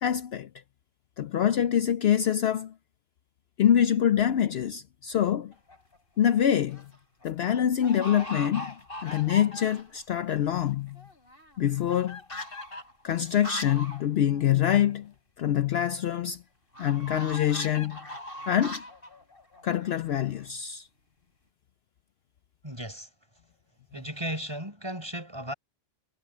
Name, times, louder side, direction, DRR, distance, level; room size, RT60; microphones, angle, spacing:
voice 1, 0.0-0.5 1.2-2.7 3.6-5.5 6.2-6.9 7.2-8.8 9.0-11.0 11.6-12.2 13.0-15.1 15.4-16.4 16.8-18.0 18.5-18.8 19.6-20.9, left 10 dB, 65° left, 0.8 m, -25 dB
sound 1, 5.5-6.0 6.5-7.0 7.2-7.3 7.8-10.0 10.4-10.5 10.7-14.0 14.3-14.4 14.7-14.8 16.7-20.5, left 1 dB, 50° left, 7.7 m, -40 dB
voice 2, 22.6-23.1 23.9-25.5, right 1 dB, 20° right, 6.0 m, -35 dB
omnidirectional pair, 1.2 m